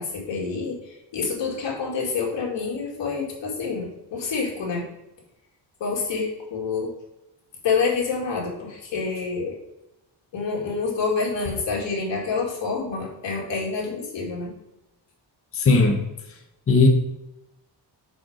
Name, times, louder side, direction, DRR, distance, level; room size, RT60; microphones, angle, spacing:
voice 1, 0.0-4.9 5.8-6.9 7.6-9.6 10.3-14.5, left 4 dB, 90° left, -2 dB, 2.3 m, -27 dB
voice 2, 15.5-16.0 16.7-16.9, left 3 dB, 30° left, 1 dB, 0.9 m, -17 dB
6.3 x 4.6 x 5.0 m, 0.95 s
wide cardioid pair, 170°, 43 cm